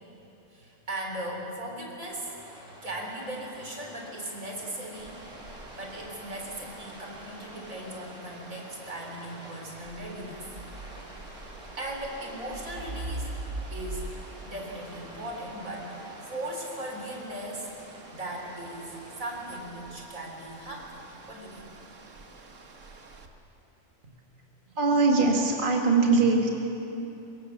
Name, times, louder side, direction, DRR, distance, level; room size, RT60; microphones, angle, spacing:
voice 1, 0.5-2.3 2.8-5.1 5.8-10.4 11.7-13.3 13.7-14.1 14.4-17.7 18.1-21.7, right 1 dB, 85° right, 0 dB, 4.5 m, -38 dB
Rain, 2.0-19.6, equal, 5° right, 6.6 m, -49 dB
sound 1, 4.9-23.3, right 2 dB, 65° right, 1.9 m, -44 dB
voice 2, 24.8-26.5, right 3 dB, 40° right, 0 dB, 2.1 m, -22 dB
24.0 x 23.5 x 7.3 m, 3.0 s
omnidirectional pair, 1.4 m